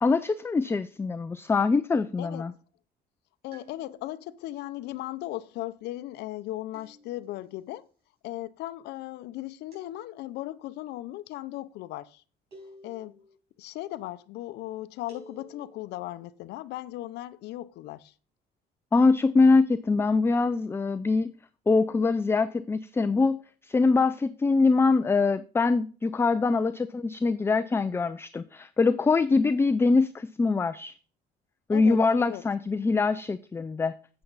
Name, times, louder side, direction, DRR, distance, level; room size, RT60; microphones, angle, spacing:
voice 1, 0.0-2.5 18.9-21.3 21.7-30.9 31.7-33.9, left 4 dB, 15° left, 0.3 m, -23 dB
voice 2, 2.2-2.6 3.4-7.9 8.2-12.2 12.8-13.1 13.6-18.1 31.7-32.4, left 15 dB, 80° left, 0.6 m, -37 dB
sound 1, 3.5-4.3 6.7-7.5 9.7-10.5 12.5-13.3 15.1-15.9, equal, 75° right, 4.9 m, -52 dB
8.0 x 7.7 x 3.9 m
cardioid pair, 110°, 17 cm